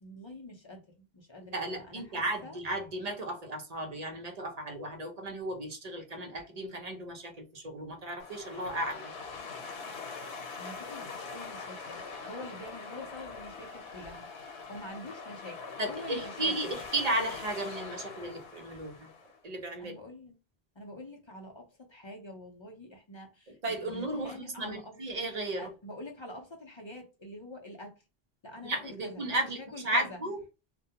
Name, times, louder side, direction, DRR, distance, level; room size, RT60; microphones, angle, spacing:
voice 1, 0.0-2.6 10.6-14.3 14.7-16.8 19.8-20.4 20.8-25.0 25.6-28.0 28.4-30.2, left 1 dB, 40° left, 0.4 m, -46 dB
voice 2, 1.5-9.1 15.8-19.1 19.4-20.0 23.6-25.7 28.6-30.4, right 1 dB, 45° right, 0.7 m, -34 dB
sound 1, 8.2-19.4, left 4 dB, 85° left, 1.0 m, -43 dB
2.3 x 2.2 x 2.7 m
omnidirectional pair, 1.1 m